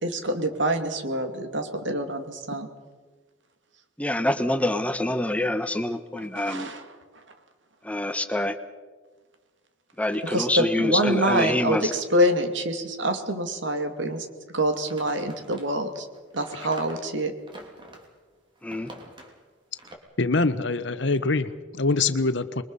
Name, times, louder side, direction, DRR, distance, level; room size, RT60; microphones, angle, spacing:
voice 1, 0.0-2.7 6.3-6.8 10.2-14.3 14.5-16.1 16.3-17.3, right 1 dB, 65° right, 6 dB, 2.5 m, -26 dB
voice 2, 4.0-6.7 7.8-8.6 10.0-11.9 18.6-18.9, left 1 dB, 5° left, 10 dB, 1.0 m, -26 dB
sound 1, 14.7-18.1 18.6-19.4 19.8-20.0, right 1 dB, 25° right, 3.0 m, -46 dB
voice 3, 20.2-22.6, left 3 dB, 65° left, 12 dB, 1.1 m, -24 dB
27.0 x 22.5 x 5.5 m, 1.4 s
head